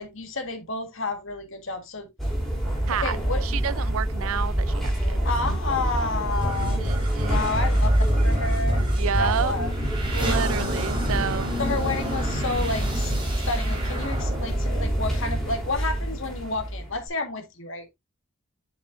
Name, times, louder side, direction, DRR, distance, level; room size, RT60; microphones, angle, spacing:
voice 1, 0.0-2.1 3.0-3.4 5.2-6.8 7.2-8.8 9.2-9.7 11.6-13.1 13.4-17.9, left 3 dB, 60° left, 1.8 m, -30 dB
sound 1, 2.2-17.1, right 1 dB, ahead, 4.0 m, -26 dB
voice 2, 2.9-5.2 6.6-7.5 8.9-9.5 10.1-11.5, right 7 dB, 70° right, 0.4 m, -30 dB
sound 2, 6.4-15.7, equal, 20° right, 3.3 m, -30 dB
7.7 x 6.8 x 2.6 m
head